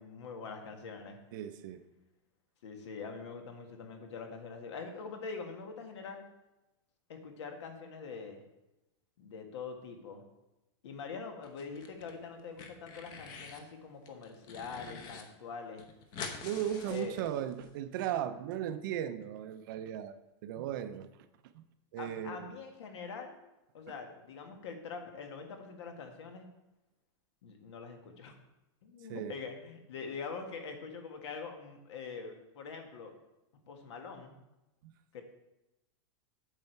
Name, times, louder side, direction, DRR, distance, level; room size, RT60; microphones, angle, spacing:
voice 1, 0.0-1.2 2.6-6.2 7.1-8.4 9.2-10.2 10.8-15.8 16.9-17.2 22.0-23.4 23.7-26.5 27.4-28.3 28.8-33.1 33.7-34.3 35.1-35.2, left 5 dB, 70° left, 4 dB, 1.7 m, -44 dB
voice 2, 1.3-1.8 16.4-21.1 21.5-21.6 21.9-22.5 29.1-29.4, right 10 dB, 45° right, 10 dB, 0.6 m, -37 dB
sound 1, 11.4-12.1 12.4-13.7 14.0-15.2 15.5-15.6 15.8-17.7, left 5 dB, 30° left, 0.9 m, -46 dB
8.9 x 6.9 x 4.5 m, 0.98 s
supercardioid pair, 170°, 15 cm